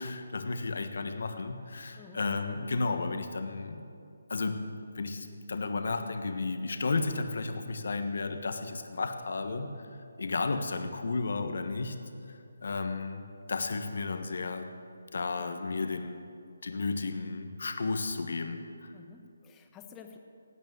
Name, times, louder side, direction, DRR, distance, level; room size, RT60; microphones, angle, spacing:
voice 1, 0.0-3.8 4.3-4.6 4.9-9.9 10.2-12.0 12.3-14.7 15.1-16.2 16.6-18.9, left 3 dB, 60° left, 7 dB, 1.4 m, -33 dB
voice 2, 18.9-20.2, left 7 dB, 15° left, 5 dB, 1.2 m, -51 dB
17.0 x 9.0 x 9.4 m, 2.5 s
figure-of-eight pair, 150°, 0 cm